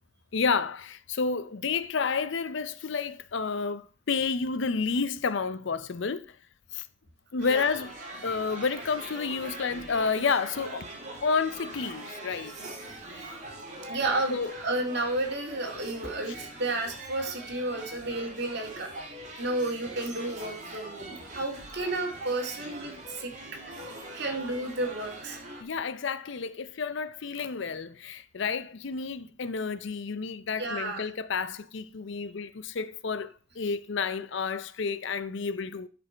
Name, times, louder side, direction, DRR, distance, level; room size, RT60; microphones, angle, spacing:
voice 1, 0.3-6.4 6.7-6.9 7.3-7.9 8.2-10.9 11.2-12.5 14.3-14.5 25.6-35.9, left 5 dB, 60° left, 0.5 m, -30 dB
sound 1, 7.4-25.6, right 1 dB, 35° right, 2.2 m, -43 dB
voice 2, 13.9-19.1 19.4-23.3 23.6-25.4 30.6-31.1, right 2 dB, 50° right, 2.1 m, -32 dB
11.0 x 5.3 x 4.5 m
head